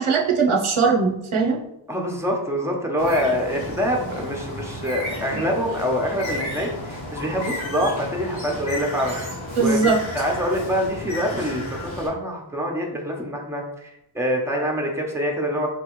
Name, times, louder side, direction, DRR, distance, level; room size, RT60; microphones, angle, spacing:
voice 1, 0.0-1.6 9.6-10.0, right 4 dB, 80° right, -1 dB, 0.8 m, -20 dB
voice 2, 1.9-15.7, equal, 5° right, 0 dB, 0.9 m, -25 dB
Bird, 3.0-12.1, left 1 dB, 70° left, 1.2 m, -33 dB
4.6 x 3.1 x 3.1 m, 0.85 s
wide cardioid pair, 55°, 49 cm